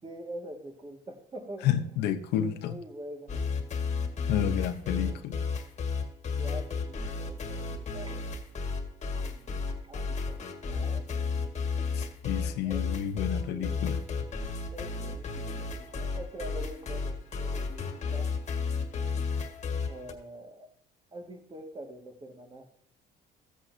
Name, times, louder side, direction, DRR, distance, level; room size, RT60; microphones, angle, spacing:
voice 1, 0.0-2.0 2.4-3.4 4.9-5.3 6.4-8.6 9.2-11.3 12.6-13.0 13.5-13.9 14.7-18.3 19.9-20.7 21.1-22.7, right 1 dB, 30° right, 3 dB, 2.0 m, -45 dB
voice 2, 1.6-2.7 4.3-5.4 11.9-14.0, left 10 dB, 90° left, 8 dB, 0.9 m, -30 dB
sound 1, 3.3-20.1, left 4 dB, 40° left, 1.8 m, -33 dB
15.0 x 8.5 x 2.8 m, 0.65 s
cardioid pair, 110°, 17 cm